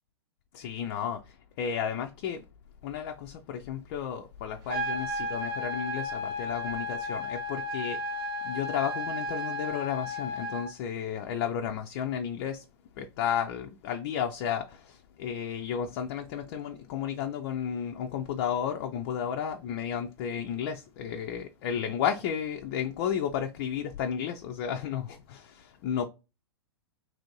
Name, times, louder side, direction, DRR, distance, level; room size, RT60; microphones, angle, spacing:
voice 1, 0.5-2.4 2.8-12.7 13.0-26.1, left 8 dB, 45° left, 0.4 m, -33 dB
sound 1, 4.7-10.7, left 1 dB, 35° right, 0.6 m, -33 dB
3.0 x 2.6 x 2.9 m
figure-of-eight pair, 110°, 14 cm